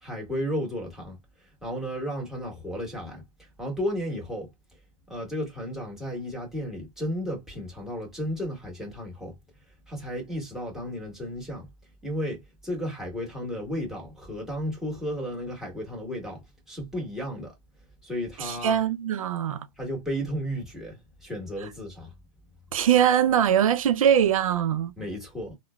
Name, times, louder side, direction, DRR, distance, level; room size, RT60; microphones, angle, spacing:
voice 1, 0.0-1.2 1.6-4.5 5.1-9.3 9.9-11.7 12.0-16.4 16.7-17.5 18.0-18.8 19.8-22.1 25.0-25.5, equal, ahead, 1.5 m, -33 dB
voice 2, 18.4-19.7 22.7-24.9, right 9 dB, 85° right, 0.4 m, -22 dB
3.6 x 2.2 x 2.3 m
hypercardioid pair, 120°, 17 cm